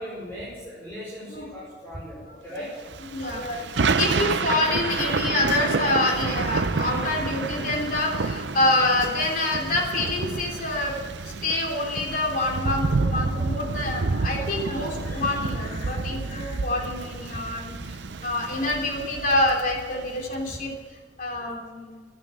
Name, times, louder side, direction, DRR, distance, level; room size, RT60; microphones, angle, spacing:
voice 1, 0.0-2.8, equal, 15° left, -8 dB, 4.8 m, -39 dB
Thunder / Rain, 2.9-20.4, right 4 dB, 75° right, 0.6 m, -29 dB
voice 2, 3.1-11.0 11.4-17.7 18.2-20.7 21.2-22.0, left 2 dB, 50° left, 0 dB, 3.5 m, -26 dB
12.5 x 11.0 x 8.4 m, 1.5 s
head